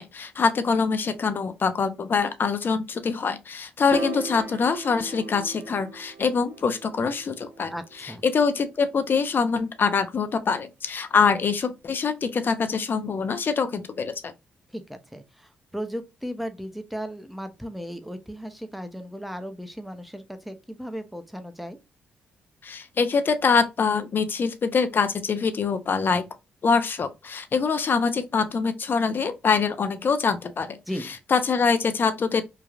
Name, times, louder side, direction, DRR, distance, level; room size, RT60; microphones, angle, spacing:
voice 1, 0.0-7.7 8.2-14.1 22.6-26.2 26.6-30.8 31.3-32.4, left 5 dB, 50° left, 0.5 m, -24 dB
Piano, 3.9-10.3, right 4 dB, 55° right, 0.5 m, -40 dB
voice 2, 7.7-8.2 14.7-21.8 30.9-31.2, equal, ahead, 0.6 m, -36 dB
3.2 x 2.3 x 2.3 m
hypercardioid pair, 45°, 4 cm